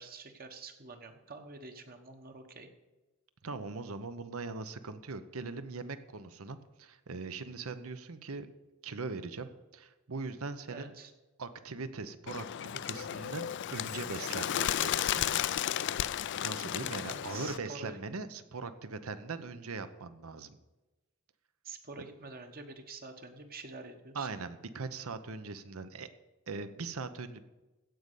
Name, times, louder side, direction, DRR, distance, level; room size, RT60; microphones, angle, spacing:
voice 1, 0.0-2.7 10.7-11.1 17.1-18.0 21.6-24.3, right 3 dB, 45° right, 6 dB, 1.2 m, -47 dB
voice 2, 3.4-8.5 8.8-10.9 11.4-15.4 16.4-20.6 24.1-26.1 26.5-27.5, right 4 dB, 75° right, 11 dB, 0.9 m, -40 dB
Bird, 12.3-17.6, left 11 dB, 55° left, 0.4 m, -33 dB
16.0 x 5.3 x 8.2 m, 1.1 s
head